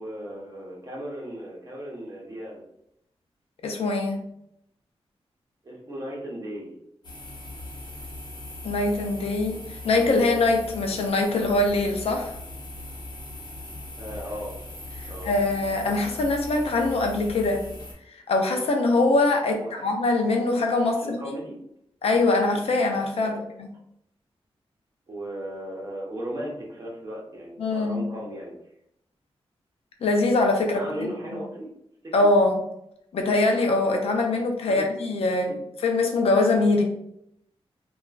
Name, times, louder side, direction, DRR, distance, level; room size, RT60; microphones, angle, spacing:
voice 1, 0.0-2.6 5.6-6.7 14.0-14.5 15.0-15.3 19.5-19.8 20.8-21.6 23.1-23.4 25.1-28.5 30.7-31.7 32.0-32.1 34.7-34.8 35.5-35.6, equal, 35° right, -4 dB, 0.9 m, -36 dB
voice 2, 3.6-4.2 8.6-12.3 15.0-17.6 18.3-21.2 22.0-23.7 27.6-28.1 30.0-31.1 32.1-32.6 33.1-36.8, left 2 dB, 70° left, 3 dB, 0.5 m, -23 dB
sound 1, 7.0-17.9, left 1 dB, 45° left, 0.9 m, -39 dB
2.9 x 2.3 x 2.4 m, 0.77 s
wide cardioid pair, 130°, 10 cm